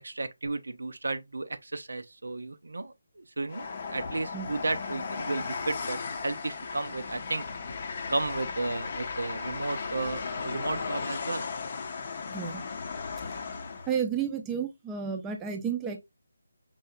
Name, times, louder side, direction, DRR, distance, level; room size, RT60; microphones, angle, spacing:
voice 1, 0.0-7.5 8.1-11.5, right 2 dB, 80° right, 0.5 m, -33 dB
Train, 3.5-14.0, left 5 dB, 40° left, 0.6 m, -36 dB
voice 2, 13.9-16.0, right 7 dB, 10° right, 0.5 m, -31 dB
5.5 x 2.7 x 2.2 m
figure-of-eight pair, 165°, 0 cm